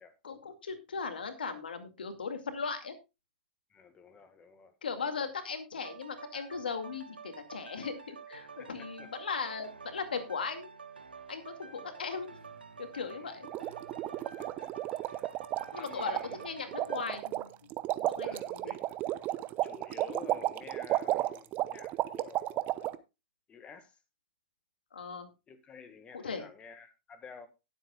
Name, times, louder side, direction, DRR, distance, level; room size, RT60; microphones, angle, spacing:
voice 1, 0.2-2.9 4.8-10.7 11.3-12.4 12.8-13.5 15.7-17.7 18.1-18.7 24.9-25.3 26.1-26.4, left 5 dB, 80° left, 2.1 m, -38 dB
voice 2, 3.7-4.7 8.6-9.1 11.6-12.1 13.2-13.3 14.2-15.4 15.7-16.4 18.2-19.3 19.6-22.8 23.5-24.0 25.5-27.5, left 5 dB, 20° left, 1.7 m, -51 dB
sound 1, 5.8-17.2, right 5 dB, 90° right, 1.5 m, -49 dB
sound 2, 13.4-22.9, right 15 dB, 35° right, 0.9 m, -33 dB
19.5 x 7.9 x 2.3 m
hypercardioid pair, 110°, 5 cm